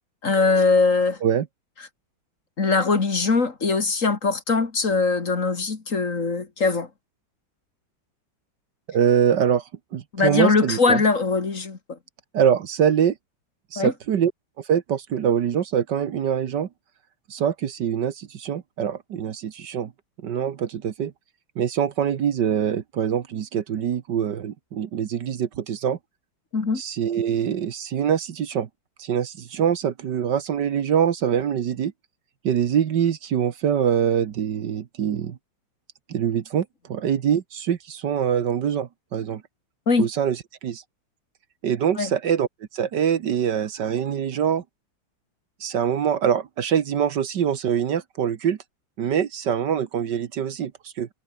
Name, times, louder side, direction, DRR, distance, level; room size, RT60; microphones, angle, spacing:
voice 1, 0.2-1.2 2.6-6.9 10.1-12.0 13.8-13.9 26.5-26.8 39.9-40.1 42.0-42.1, left 4 dB, 40° left, 2.5 m, -21 dB
voice 2, 8.9-9.6 9.9-11.0 12.3-13.2 13.7-14.3 14.7-16.7 17.3-19.9 20.2-21.1 21.6-26.0 26.8-28.7 29.0-31.9 32.4-35.4 36.1-39.4 40.0-40.8 41.6-42.5 42.7-44.6 45.6-48.6 49.0-51.1, right 8 dB, 65° right, 1.8 m, -24 dB
omnidirectional pair, 2.1 m